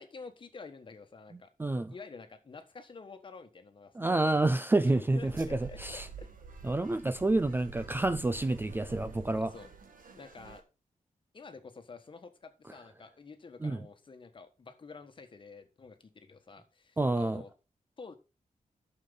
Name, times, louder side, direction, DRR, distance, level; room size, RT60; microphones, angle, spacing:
voice 1, 0.0-1.5 1.9-4.4 4.9-6.3 9.3-9.7 10.1-10.6 11.3-17.5 18.0-18.2, left 4 dB, 35° left, 1.4 m, -49 dB
voice 2, 1.6-1.9 4.0-6.1 6.6-9.5 13.6-13.8 17.0-17.4, right 2 dB, 15° right, 0.4 m, -28 dB
sound 1, 5.2-10.6, right 5 dB, 80° right, 1.6 m, -48 dB
11.5 x 6.6 x 3.9 m
wide cardioid pair, 160°, 14 cm